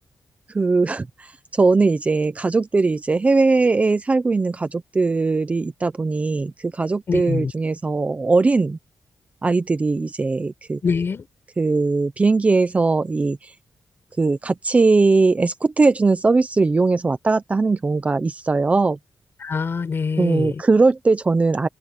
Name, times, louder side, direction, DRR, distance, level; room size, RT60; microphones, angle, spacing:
voice 1, 0.5-8.8 9.4-10.8 11.6-13.5 14.2-19.0 20.2-21.7, right 3 dB, 25° right, 0.8 m, -20 dB
voice 2, 7.1-7.5 10.8-11.3 19.4-20.6, left 5 dB, 40° left, 6.2 m, -24 dB
open air
wide cardioid pair, 145°, 6 cm